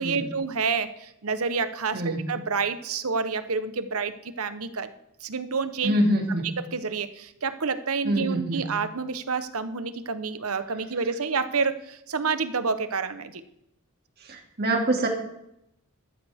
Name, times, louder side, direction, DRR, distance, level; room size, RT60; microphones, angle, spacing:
voice 1, 0.0-4.9 5.2-5.9 6.7-13.4, right 5 dB, 75° right, 11 dB, 1.0 m, -28 dB
voice 2, 5.8-6.5 8.0-8.6 14.2-15.1, right 1 dB, 45° right, 1 dB, 2.5 m, -25 dB
13.5 x 12.5 x 3.6 m, 0.79 s
head